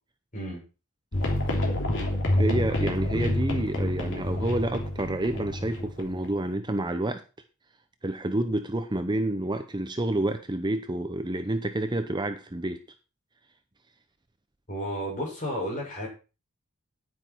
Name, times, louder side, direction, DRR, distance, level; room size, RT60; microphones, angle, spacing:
sound 1, 1.1-6.3, left 1 dB, 55° left, 3.1 m, -28 dB
voice 1, 2.4-7.2 8.0-12.8, right 1 dB, 20° right, 8 dB, 0.8 m, -29 dB
voice 2, 14.7-16.1, equal, 35° left, -2 dB, 7.0 m, -32 dB
10.0 x 9.6 x 4.6 m, 0.32 s
head